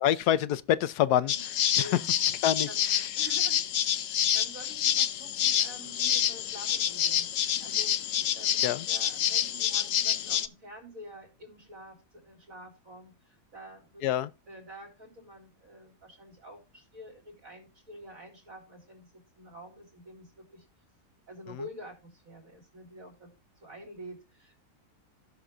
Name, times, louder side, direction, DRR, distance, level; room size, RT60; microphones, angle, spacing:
voice 1, 0.0-1.3 1.8-2.0 2.4-3.2 8.6-8.9 14.0-14.3 21.5-21.6, left 11 dB, 80° left, 1.2 m, -26 dB
voice 2, 1.1-1.4 1.7-2.2 2.7-2.8 3.2-3.7 4.0-7.9 8.3-14.1 14.5-19.1 19.3-20.6 21.3-23.3 23.6-24.6, equal, 60° right, 4.2 m, -48 dB
sound 1, 1.3-10.5, left 10 dB, 60° left, 1.0 m, -28 dB
18.0 x 6.0 x 2.5 m
omnidirectional pair, 1.7 m